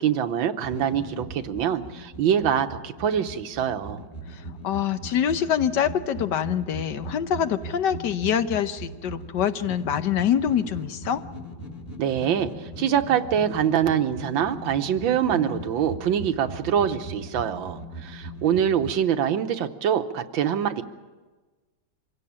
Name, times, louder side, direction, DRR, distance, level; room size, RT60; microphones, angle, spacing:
voice 1, 0.0-4.0 12.0-20.8, right 9 dB, 85° right, 8 dB, 1.7 m, -24 dB
sound 1, 0.6-19.0, right 1 dB, 30° left, 2.0 m, -39 dB
voice 2, 4.3-11.2, left 9 dB, 70° left, 11 dB, 1.4 m, -25 dB
25.0 x 16.5 x 8.7 m, 1.3 s
omnidirectional pair, 2.1 m